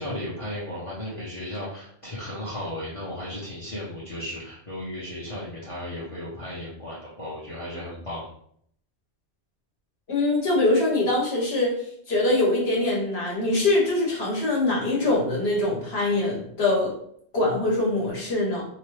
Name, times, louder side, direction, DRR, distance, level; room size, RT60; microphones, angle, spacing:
voice 1, 0.0-8.3, left 1 dB, 35° left, -7 dB, 0.7 m, -35 dB
voice 2, 10.1-11.8 12.1-16.9 17.3-18.6, left 2 dB, 70° left, -4 dB, 1.3 m, -23 dB
2.9 x 2.2 x 3.1 m, 0.66 s
omnidirectional pair, 1.1 m